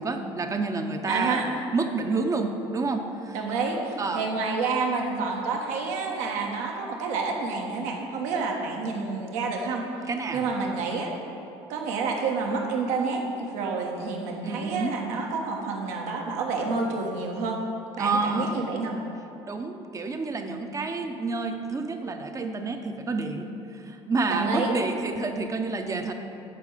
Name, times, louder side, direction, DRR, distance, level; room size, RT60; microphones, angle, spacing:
voice 1, 0.0-1.4 1.7-3.4 4.0-4.2 10.1-10.5 14.4-14.9 18.0-18.6 19.5-26.1, right 3 dB, 25° right, 6 dB, 0.8 m, -29 dB
voice 2, 1.1-1.5 3.3-9.9 10.3-11.1 11.7-17.6 18.0-19.0 24.3-24.8, right 4 dB, 70° right, 1 dB, 1.3 m, -29 dB
8.5 x 4.6 x 6.6 m, 2.9 s
hypercardioid pair, 80°, 13 cm